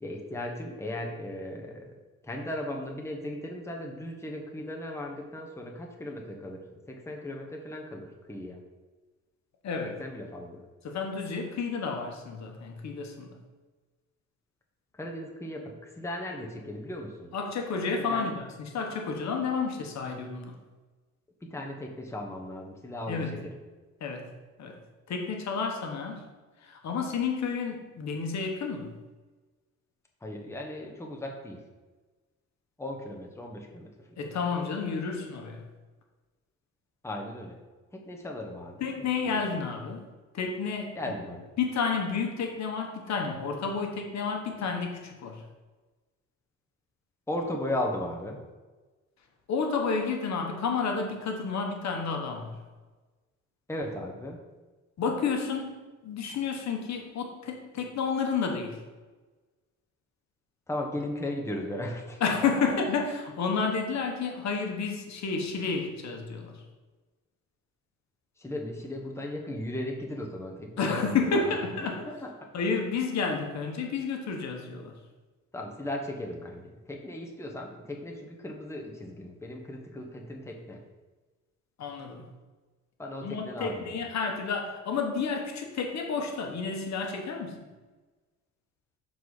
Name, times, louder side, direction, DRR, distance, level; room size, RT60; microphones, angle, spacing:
voice 1, 0.0-1.9 2.2-8.6 10.0-10.6 14.9-17.3 18.1-18.3 21.4-23.5 30.2-31.6 32.8-33.9 37.0-37.6 37.9-39.4 40.9-41.5 47.3-48.4 53.7-54.4 60.7-62.2 68.4-71.3 71.7-72.3 75.5-80.8 83.0-84.0, left 1 dB, 10° left, 0 dB, 1.1 m, -37 dB
voice 2, 10.8-13.3 17.3-20.5 23.1-23.3 24.0-24.3 24.6-24.7 25.1-26.2 26.6-28.9 34.2-35.6 38.8-40.0 40.3-41.0 41.6-45.4 49.5-52.6 55.0-58.8 62.2-66.6 70.8-72.0 72.5-74.9 81.8-82.2 83.2-87.6, left 5 dB, 65° left, 3 dB, 1.2 m, -30 dB
6.9 x 4.1 x 4.8 m, 1.2 s
cardioid pair, 90°, 30 cm